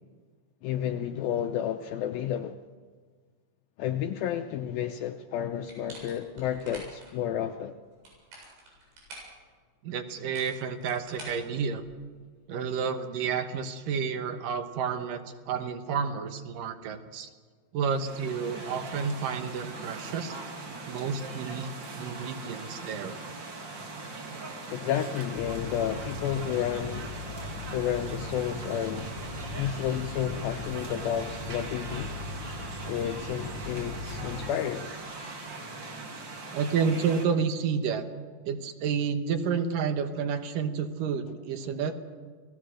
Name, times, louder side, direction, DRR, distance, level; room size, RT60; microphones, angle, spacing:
voice 1, 0.6-2.6 3.8-7.8 24.6-27.1 27.7-29.1 29.5-32.1 32.9-34.9, left 10 dB, 75° left, 2.4 m, -31 dB
sound 1, 5.7-7.1 7.9-9.4 10.1-12.1, right 1 dB, 85° right, 9.8 m, -47 dB
voice 2, 9.8-11.8 12.5-17.3 17.7-20.3 20.9-21.7 22.0-23.2 36.5-38.1 38.5-42.0, right 6 dB, 65° right, 2.6 m, -30 dB
sound 2, 17.9-37.3, right 3 dB, 35° right, 2.3 m, -41 dB
sound 3, 25.4-34.5, left 2 dB, 60° left, 1.4 m, -39 dB
30.0 x 19.0 x 6.4 m
omnidirectional pair, 4.6 m